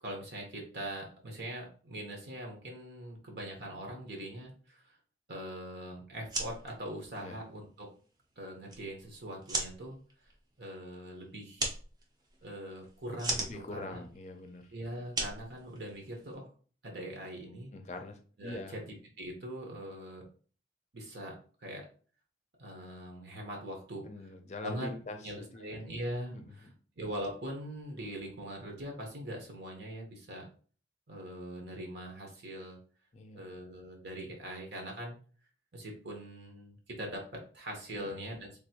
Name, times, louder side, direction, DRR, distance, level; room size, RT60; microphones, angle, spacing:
voice 1, 0.0-5.0 5.3-7.9 8.4-10.0 10.6-11.7 12.4-14.0 14.7-16.5 16.8-17.7 18.4-20.3 20.9-21.9 22.6-24.1 24.6-24.9 25.2-26.7 27.0-30.4 31.1-32.8 33.3-35.2 35.7-38.6, right 1 dB, 70° right, 0 dB, 0.9 m, -42 dB
sound 1, 6.1-16.3, right 2 dB, 25° right, 0.6 m, -40 dB
voice 2, 13.4-14.7 17.7-18.8 24.0-25.8 26.3-26.6 33.1-33.5 37.9-38.3, left 2 dB, 40° left, 6 dB, 0.5 m, -44 dB
3.4 x 2.6 x 2.8 m, 0.41 s
head